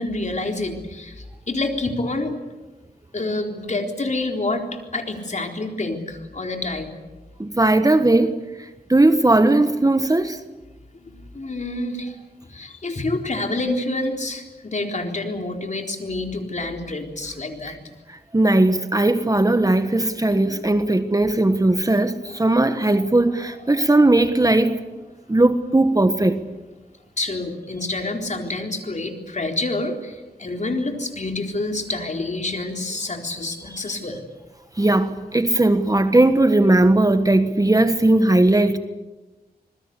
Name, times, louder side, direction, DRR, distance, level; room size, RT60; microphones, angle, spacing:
voice 1, 0.0-2.4 3.1-6.9 11.0-12.2 12.5-17.8 20.3-20.6 22.3-22.4 22.9-23.0 23.7-23.8 27.2-34.2, left 2 dB, 45° left, 4.1 m, -28 dB
voice 2, 7.4-8.4 8.9-10.4 18.3-24.8 25.3-26.4 34.8-38.8, right 2 dB, 20° right, 1.4 m, -18 dB
26.5 x 21.0 x 8.3 m
wide cardioid pair, 75°, 17 cm